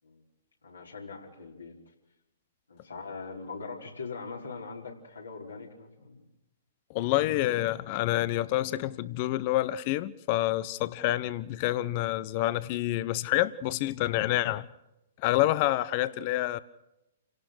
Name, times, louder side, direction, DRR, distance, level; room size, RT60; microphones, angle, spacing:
voice 1, 0.6-1.8 2.7-6.2, left 4 dB, 75° left, 5.1 m, -41 dB
voice 2, 6.9-14.6 15.2-16.6, left 15 dB, 40° left, 1.0 m, -28 dB
29.5 x 17.5 x 6.5 m
figure-of-eight pair, 115°, 0 cm